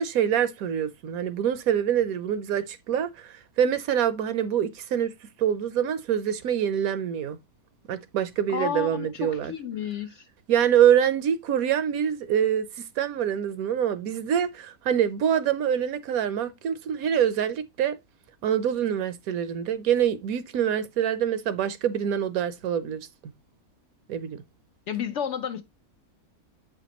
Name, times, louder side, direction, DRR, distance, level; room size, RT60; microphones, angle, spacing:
voice 1, 0.0-5.1 5.4-7.4 7.9-9.5 10.5-18.0 18.4-23.1 24.1-24.4, right 9 dB, 70° right, 1.1 m, -25 dB
voice 2, 8.5-10.3 24.9-25.6, left 8 dB, 65° left, 0.7 m, -31 dB
8.2 x 5.1 x 2.9 m
omnidirectional pair, 1.6 m